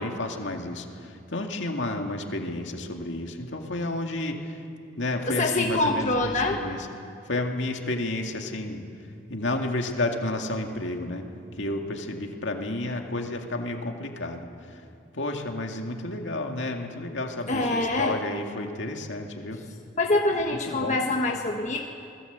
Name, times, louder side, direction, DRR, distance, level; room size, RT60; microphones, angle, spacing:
voice 1, 0.0-4.6 5.0-6.9 7.3-8.8 9.3-11.2 11.6-14.8 15.1-19.6 20.7-21.0, left 2 dB, 65° left, 3 dB, 2.2 m, -31 dB
voice 2, 5.3-6.6 17.5-18.2 20.0-21.8, left 2 dB, 35° left, 1 dB, 1.4 m, -25 dB
28.0 x 20.0 x 8.1 m, 2.6 s
head